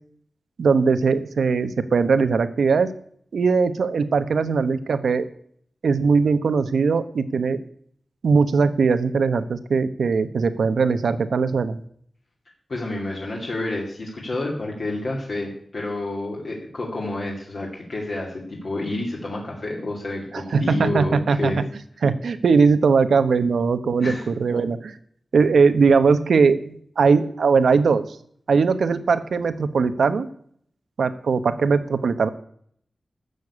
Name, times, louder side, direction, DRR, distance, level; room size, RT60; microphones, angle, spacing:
voice 1, 0.6-2.9 3.3-5.2 5.8-7.6 8.2-11.8 20.3-21.6 22.0-25.0 25.3-28.0 28.5-30.3 31.0-32.3, right 5 dB, 85° right, 12 dB, 1.0 m, -20 dB
voice 2, 12.7-21.6 24.0-24.3, left 2 dB, 55° left, -2 dB, 2.6 m, -29 dB
13.0 x 6.9 x 8.7 m, 0.62 s
wide cardioid pair, 135°, 0 cm